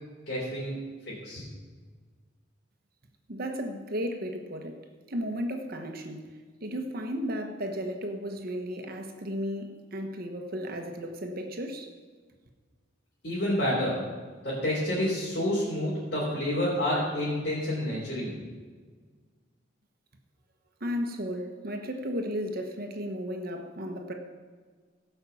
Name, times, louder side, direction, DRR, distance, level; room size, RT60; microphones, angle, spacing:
voice 1, 0.3-1.4 13.2-14.0 14.4-18.3, left 1 dB, 60° left, -8 dB, 3.8 m, -29 dB
voice 2, 3.3-4.8 5.1-11.9 20.8-24.1, equal, 50° right, 4 dB, 1.3 m, -34 dB
17.0 x 5.7 x 7.1 m, 1.5 s
head